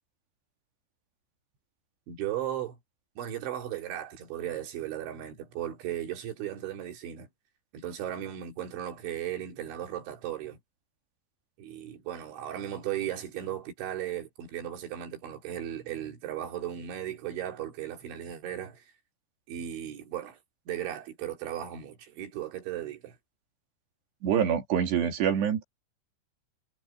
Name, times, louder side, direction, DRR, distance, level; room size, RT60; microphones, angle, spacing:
voice 1, 2.1-2.8 3.2-7.3 7.7-10.6 11.6-18.8 19.5-20.4 20.7-23.2, right 11 dB, 85° right, 5.4 m, -36 dB
voice 2, 24.2-25.6, right 8 dB, 70° right, 4.6 m, -26 dB
omnidirectional pair, 5.2 m